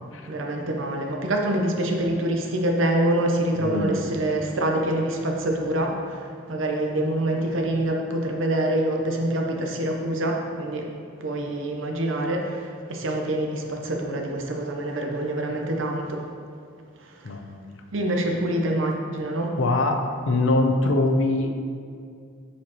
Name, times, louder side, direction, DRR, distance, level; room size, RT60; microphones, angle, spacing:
voice 1, 0.3-10.9 11.2-16.2 17.0-17.2 17.9-19.6, right 1 dB, 80° right, 2 dB, 0.7 m, -26 dB
voice 2, 3.6-4.0 17.2-17.7 19.6-20.0 20.2-21.6, left 2 dB, 75° left, 4 dB, 0.6 m, -23 dB
7.4 x 4.3 x 2.9 m, 2.3 s
head